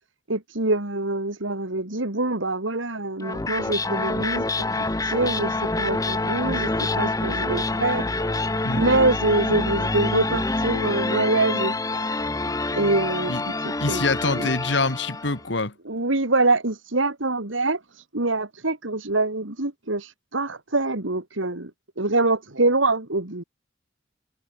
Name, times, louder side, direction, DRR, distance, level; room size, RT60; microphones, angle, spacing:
voice 1, 0.3-8.4 8.8-12.4 12.7-14.0 14.4-14.5 15.8-17.8 18.1-21.7 22.0-23.4, right 2 dB, 85° right, 2.9 m, -25 dB
sound 1, 3.2-15.4, left 2 dB, 20° left, 0.9 m, -26 dB
voice 2, 13.8-15.7, left 3 dB, 65° left, 2.0 m, -25 dB
head